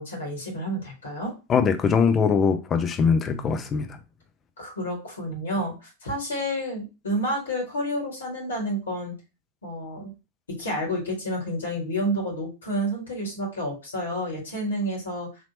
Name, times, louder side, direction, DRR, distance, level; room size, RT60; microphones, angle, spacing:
voice 1, 0.0-1.3 4.6-9.1 9.6-10.1 10.6-15.3, equal, 70° left, 2.1 m, -30 dB
voice 2, 1.5-4.0, left 6 dB, 25° left, 0.6 m, -22 dB
4.2 x 2.9 x 2.9 m
figure-of-eight pair, 90°, 0 cm